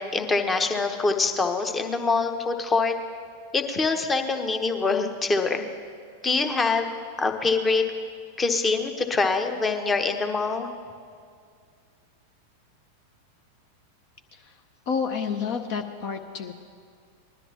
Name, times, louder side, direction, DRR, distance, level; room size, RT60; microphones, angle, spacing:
voice 1, 0.0-2.9 3.5-5.7 6.2-6.9 7.2-7.8 8.4-10.7, left 4 dB, 15° left, 6 dB, 1.0 m, -24 dB
voice 2, 14.9-16.5, left 6 dB, 45° left, 6 dB, 0.8 m, -29 dB
20.5 x 12.5 x 2.9 m, 2.1 s
figure-of-eight pair, 90°, 0 cm